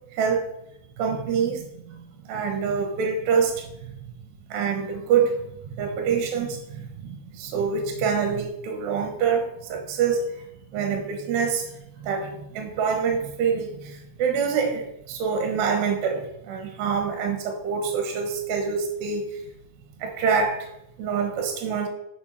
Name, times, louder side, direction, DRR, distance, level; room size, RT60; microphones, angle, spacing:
voice 1, 0.1-0.5 1.0-2.0 2.2-3.9 4.5-5.4 5.7-10.4 10.7-19.4 20.0-20.7 21.0-21.9, right 6 dB, 80° right, 3 dB, 3.4 m, -26 dB
7.1 x 6.9 x 5.8 m, 0.83 s
omnidirectional pair, 4.9 m